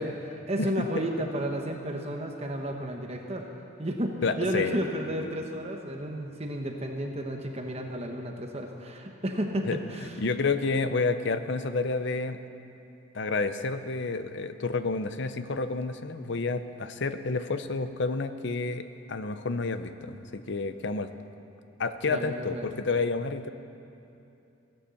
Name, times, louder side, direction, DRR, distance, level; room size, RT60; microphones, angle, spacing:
voice 1, 0.0-3.5 3.8-10.1 22.0-22.7, equal, 30° right, 2 dB, 1.1 m, -32 dB
voice 2, 0.6-1.0 4.2-4.8 5.2-5.4 9.7-9.8 10.2-12.4 13.1-21.1 21.8-23.5, left 3 dB, 55° left, 10 dB, 0.7 m, -30 dB
16.5 x 11.5 x 7.0 m, 2.7 s
head